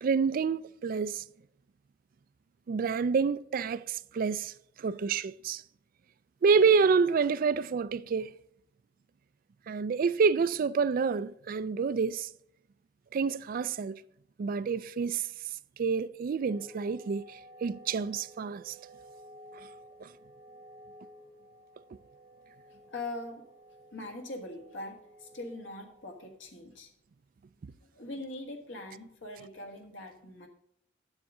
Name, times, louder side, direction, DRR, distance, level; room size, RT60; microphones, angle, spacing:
voice 1, 0.0-1.2 2.7-5.6 6.4-8.3 9.7-12.3 13.1-14.0 14.4-15.3 15.8-18.8 20.0-20.1, right 5 dB, 50° right, 0.3 m, -28 dB
sound 1, 16.4-26.3, equal, 20° right, 1.8 m, -53 dB
voice 2, 22.9-23.4 23.9-26.9 27.9-30.5, left 2 dB, 85° left, 1.6 m, -42 dB
9.6 x 7.7 x 3.7 m
head